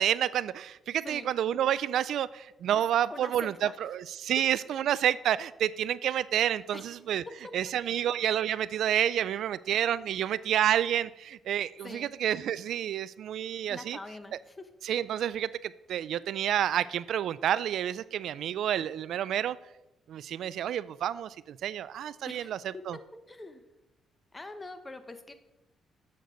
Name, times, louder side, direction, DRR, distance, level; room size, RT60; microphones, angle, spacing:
voice 1, 0.0-7.2 7.5-14.0 14.3-14.4 14.8-19.6 20.1-23.0, right 10 dB, 75° right, 18 dB, 0.3 m, -29 dB
voice 2, 3.1-3.7 6.7-6.9 7.9-8.1 11.8-12.1 13.7-14.7 22.2-23.0 23.3-23.6 24.3-25.3, left 2 dB, 20° left, 9 dB, 1.1 m, -44 dB
11.5 x 8.0 x 3.9 m, 0.96 s
cardioid pair, 90°, 0 cm